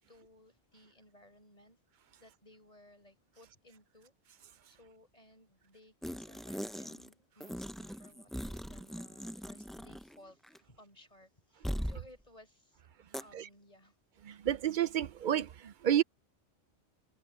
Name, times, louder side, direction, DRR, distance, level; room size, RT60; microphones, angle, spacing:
voice 1, 0.1-1.8 2.2-4.4 4.7-12.8 13.2-14.0, left 1 dB, 35° left, 6.4 m, -60 dB
sound 1, 6.0-7.1 7.4-10.2 10.4-10.6 11.6-12.0 13.1-13.2, equal, ahead, 0.4 m, -40 dB
voice 2, 14.2-16.0, right 10 dB, 55° right, 0.6 m, -30 dB
omnidirectional pair, 1.1 m